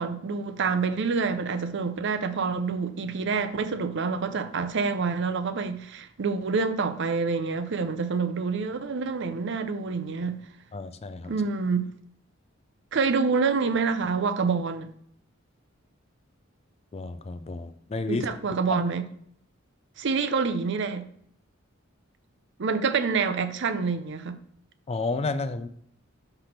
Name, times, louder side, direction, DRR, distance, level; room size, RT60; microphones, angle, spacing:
voice 1, 0.0-10.4 11.3-11.9 12.9-14.9 18.1-19.0 20.0-21.0 22.6-24.3, right 4 dB, 60° right, 0.6 m, -27 dB
voice 2, 10.7-11.3 16.9-18.3 24.9-25.7, left 3 dB, 30° left, 0.4 m, -31 dB
5.9 x 3.3 x 5.8 m
head